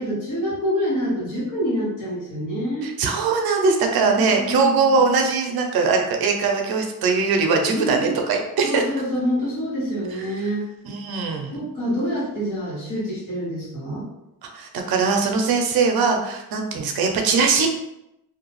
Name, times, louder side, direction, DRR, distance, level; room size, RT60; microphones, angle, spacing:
voice 1, 0.0-2.9 4.0-5.0 7.7-8.1 8.6-10.6 11.5-14.1, equal, 55° left, -7 dB, 1.5 m, -26 dB
voice 2, 2.8-8.8 10.8-11.6 14.4-17.7, right 4 dB, 75° right, 3 dB, 0.6 m, -21 dB
2.6 x 2.3 x 3.0 m, 0.87 s
cardioid pair, 125°, 37 cm